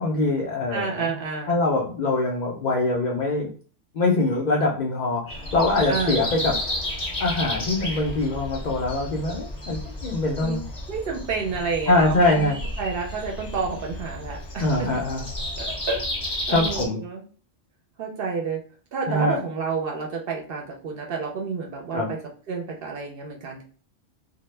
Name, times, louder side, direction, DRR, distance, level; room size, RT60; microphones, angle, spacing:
voice 1, 0.0-1.1 1.5-3.5 3.9-5.2 5.5-6.6 7.2-10.6 11.9-12.6 14.6-15.2 16.5-17.0 19.1-19.4 21.9-22.1, left 2 dB, 70° left, 0 dB, 0.4 m, -23 dB
voice 2, 0.7-1.6 5.9-6.2 10.4-12.5 12.8-14.9 15.6-17.2 18.0-18.6 18.9-22.2 22.5-23.6, right 5 dB, 60° right, 1 dB, 0.6 m, -30 dB
Breathing, 5.3-16.9, left 1 dB, 30° left, 0.6 m, -32 dB
2.1 x 2.0 x 3.1 m, 0.42 s
omnidirectional pair, 1.3 m